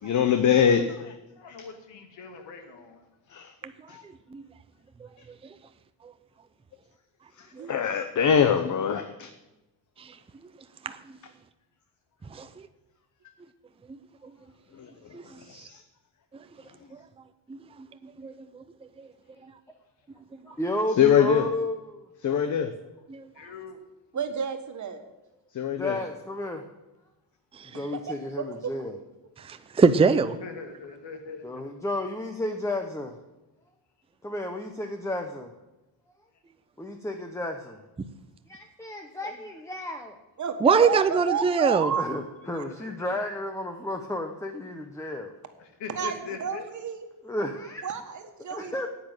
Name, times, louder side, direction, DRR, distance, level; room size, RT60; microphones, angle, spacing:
voice 1, 0.0-1.2 1.6-1.7 3.3-3.5 3.9-4.0 7.4-9.3 14.7-15.8 21.0-21.5 22.2-22.7 25.5-26.0, left 8 dB, 45° left, 8 dB, 0.9 m, -24 dB
voice 2, 1.4-3.0 23.3-23.8 30.4-31.6 41.3-41.4 42.4-42.9 45.6-46.7, left 5 dB, 80° left, 6 dB, 2.3 m, -41 dB
voice 3, 10.8-11.2 12.3-12.5 15.1-15.4 17.5-17.6 18.0-18.3 23.1-23.3 27.5-27.7 29.4-30.4 40.6-41.9, right 5 dB, 15° right, 10 dB, 0.5 m, -23 dB
voice 4, 20.5-22.1 25.7-26.6 27.6-29.0 31.4-33.2 34.2-35.5 36.8-37.8 38.5-40.2 41.9-45.3 47.2-47.8 48.5-48.9, left 1 dB, 5° left, 5 dB, 0.9 m, -32 dB
voice 5, 24.1-25.0 27.7-27.8 28.4-28.7 40.4-42.2 42.5-42.6 45.9-47.1 47.8-48.9, right 7 dB, 40° right, 6 dB, 1.7 m, -31 dB
10.0 x 8.6 x 9.0 m, 1.0 s
cardioid pair, 140°, 42 cm